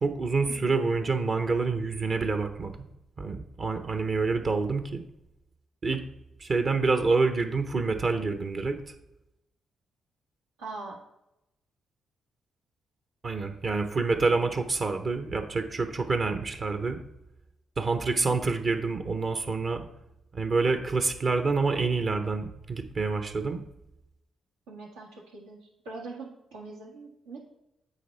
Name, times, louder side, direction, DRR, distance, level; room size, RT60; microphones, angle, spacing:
voice 1, 0.0-2.7 3.2-5.0 5.8-6.0 6.4-8.7 13.2-17.0 17.8-19.9 20.3-23.6, right 4 dB, 50° right, 7 dB, 1.0 m, -27 dB
voice 2, 10.6-11.0 24.7-27.4, right 3 dB, 90° right, -3 dB, 1.5 m, -42 dB
8.3 x 3.7 x 4.3 m, 0.86 s
hypercardioid pair, 45°, 0 cm